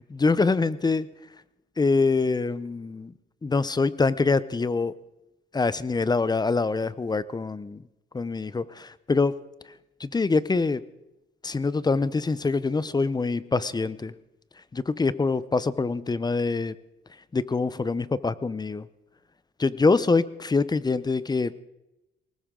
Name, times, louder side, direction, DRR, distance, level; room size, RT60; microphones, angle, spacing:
voice 1, 0.2-1.1 1.8-3.1 3.4-4.9 5.5-7.8 8.1-9.3 10.0-10.8 11.4-14.1 14.7-16.7 17.3-18.9 19.6-21.5, left 4 dB, 20° left, 17 dB, 0.7 m, -24 dB
20.0 x 19.0 x 3.8 m, 0.94 s
cardioid pair, 90°, 20 cm